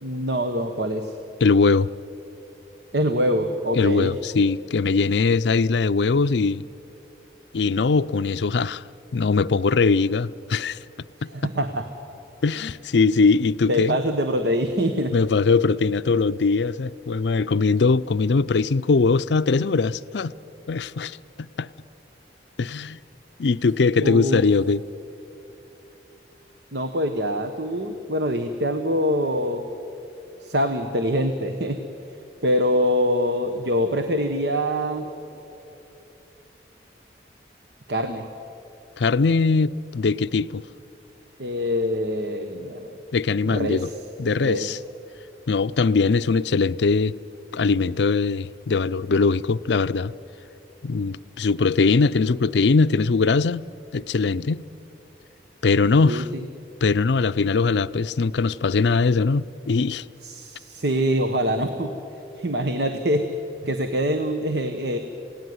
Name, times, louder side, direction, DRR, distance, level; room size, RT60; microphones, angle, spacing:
voice 1, 0.0-1.1 2.9-4.1 11.3-11.9 13.7-15.1 24.0-24.4 26.7-29.6 30.4-31.8 32.4-35.1 37.9-38.2 41.4-42.9 43.5-43.9 44.4-44.7 56.1-56.2 60.2-61.9 62.4-63.2 63.7-65.0, equal, 70° right, 1.3 m, -24 dB
voice 2, 1.4-1.9 3.7-6.6 7.5-8.8 9.1-10.8 11.2-11.3 12.4-14.0 15.1-20.3 20.7-21.7 22.6-23.0 23.4-24.8 39.0-40.6 43.1-43.9 44.2-44.8 45.5-47.2 47.5-50.1 50.8-53.7 53.9-54.6 55.6-56.3 56.8-60.0, left 4 dB, 80° left, 0.5 m, -21 dB
28.0 x 17.5 x 9.5 m
head